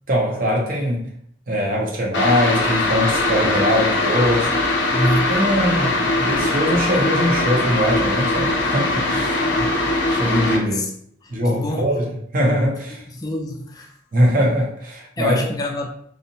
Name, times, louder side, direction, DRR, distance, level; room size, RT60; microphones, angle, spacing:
voice 1, 0.1-1.1 1.5-4.5 5.0-9.7 10.1-10.8 11.3-12.1 12.3-13.0 14.1-15.5, equal, 45° right, 0.6 m, -21 dB
sound 1, 2.1-10.6, left 2 dB, 85° left, 0.5 m, -21 dB
voice 2, 4.9-5.3 10.7-10.9 11.2-11.9 13.1-14.0 15.2-15.9, left 1 dB, 20° left, 0.3 m, -26 dB
2.6 x 2.0 x 2.7 m
head